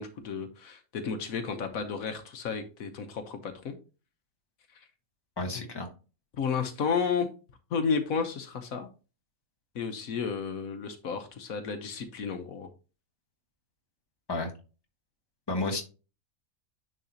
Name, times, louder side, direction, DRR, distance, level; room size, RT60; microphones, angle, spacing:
voice 1, 0.0-3.8 4.7-4.9 5.5-5.7 6.4-7.3 7.7-8.9 9.7-12.7, left 6 dB, 80° left, 7 dB, 1.4 m, -32 dB
voice 2, 5.4-5.9 14.3-14.5 15.5-15.8, left 2 dB, 20° left, 3 dB, 1.4 m, -31 dB
10.0 x 4.1 x 2.8 m, 0.33 s
omnidirectional pair, 1.5 m